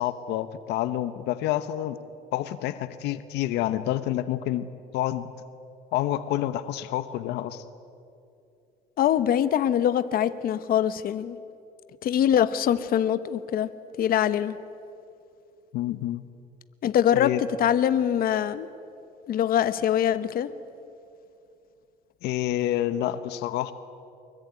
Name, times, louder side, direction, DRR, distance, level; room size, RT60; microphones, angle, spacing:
voice 1, 0.0-2.0 2.3-5.3 5.9-7.6 15.7-16.3 17.1-17.4 22.2-23.7, left 13 dB, 85° left, 1.0 m, -28 dB
voice 2, 9.0-11.4 12.0-13.7 14.0-14.6 16.8-17.3 17.6-18.7 19.3-20.5, left 10 dB, 60° left, 1.1 m, -23 dB
24.5 x 22.0 x 9.5 m
cardioid pair, 110°, 17 cm